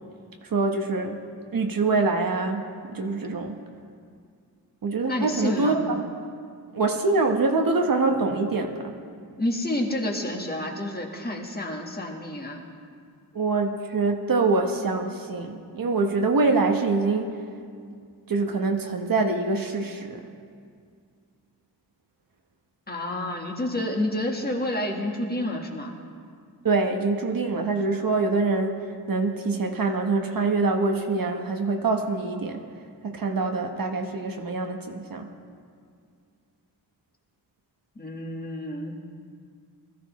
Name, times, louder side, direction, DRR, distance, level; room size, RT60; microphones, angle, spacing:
voice 1, 0.4-1.2 1.5-3.6 4.8-6.0 6.7-9.0 13.3-17.3 18.3-20.2 26.6-32.7 33.0-35.3, right 3 dB, 50° right, 4 dB, 1.1 m, -25 dB
voice 2, 5.1-5.8 9.4-12.6 22.9-25.9 37.9-39.0, left 1 dB, 20° left, 1 dB, 1.5 m, -29 dB
21.0 x 14.0 x 3.1 m, 2.2 s
wide cardioid pair, 110°, 42 cm